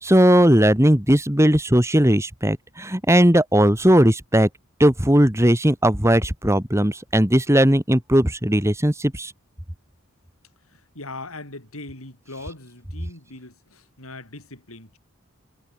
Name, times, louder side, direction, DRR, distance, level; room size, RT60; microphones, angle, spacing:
voice 1, 0.0-4.5 4.8-9.3, equal, 15° right, 2.4 m, -18 dB
voice 2, 10.7-15.0, left 2 dB, 90° left, 7.6 m, -40 dB
head